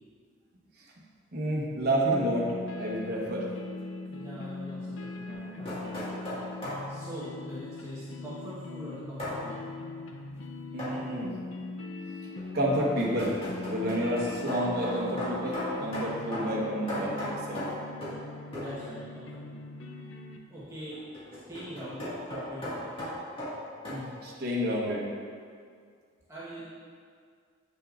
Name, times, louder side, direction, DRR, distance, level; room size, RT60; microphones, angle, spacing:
voice 1, 1.3-2.5 2.7-3.5 10.7-11.3 12.5-13.3 13.6-17.7 23.9-25.0, right 1 dB, 50° right, -4 dB, 1.2 m, -29 dB
sound 1, 2.1-20.4, left 2 dB, 80° left, 0.5 m, -41 dB
voice 2, 4.1-6.0 6.9-9.7 16.2-16.4 18.5-19.6 20.5-21.0 21.5-22.9 26.3-26.6, equal, 15° right, -11 dB, 1.2 m, -43 dB
sound 2, 5.3-6.9 9.2-9.4 10.8-11.1 12.4-18.3 18.5-18.8 20.9-24.0, left 1 dB, 25° left, 1.8 m, -37 dB
8.1 x 6.6 x 2.5 m, 2.1 s
head